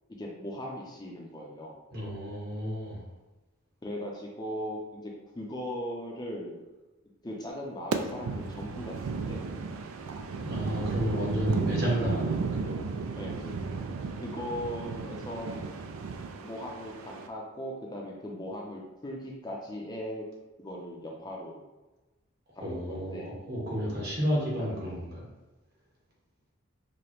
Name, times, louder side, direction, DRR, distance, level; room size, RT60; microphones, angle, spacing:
voice 1, 0.2-1.7 3.8-6.6 7.2-9.0 9.3-9.6 12.0-12.2 13.2-13.6 14.2-15.5 16.4-20.3 20.6-21.6 22.6-23.3, equal, 20° left, -2 dB, 0.5 m, -38 dB
voice 2, 1.9-3.0 10.4-12.8 22.6-25.3, equal, 50° right, -4 dB, 1.3 m, -32 dB
sound 1, 7.9-17.3, right 4 dB, 85° right, 0.4 m, -34 dB
4.9 x 2.1 x 3.0 m, 1.1 s
head